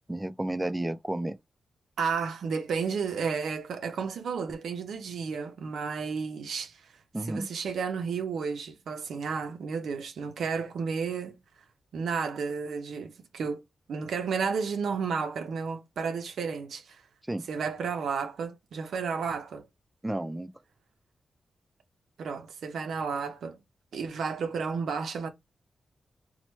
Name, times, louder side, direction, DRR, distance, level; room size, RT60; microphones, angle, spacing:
voice 1, 0.1-1.4 7.1-7.5 17.3-17.4 20.0-20.5, right 1 dB, 15° right, 0.3 m, -31 dB
voice 2, 2.0-6.9 7.2-11.4 11.9-13.6 13.9-17.0 17.5-19.7 22.2-23.6 23.9-25.3, right 5 dB, 85° right, 0.5 m, -32 dB
3.0 x 2.1 x 3.0 m
cardioid pair, 80°, 0 cm